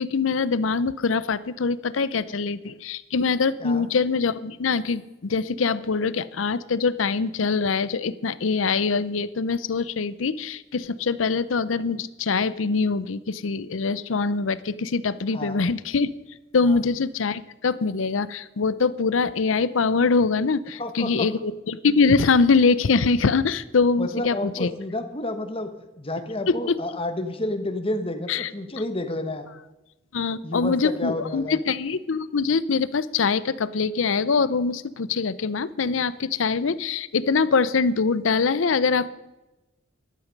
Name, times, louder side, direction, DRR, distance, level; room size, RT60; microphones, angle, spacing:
voice 1, 0.0-16.1 16.5-24.3 24.6-24.7 28.3-28.5 30.1-39.1, left 4 dB, 85° left, 17 dB, 0.6 m, -23 dB
voice 2, 15.3-15.6 16.6-16.8 20.8-21.3 24.0-25.7 26.0-29.5 30.4-31.6, left 1 dB, 30° left, 8 dB, 1.2 m, -30 dB
13.5 x 11.5 x 5.3 m, 1.0 s
head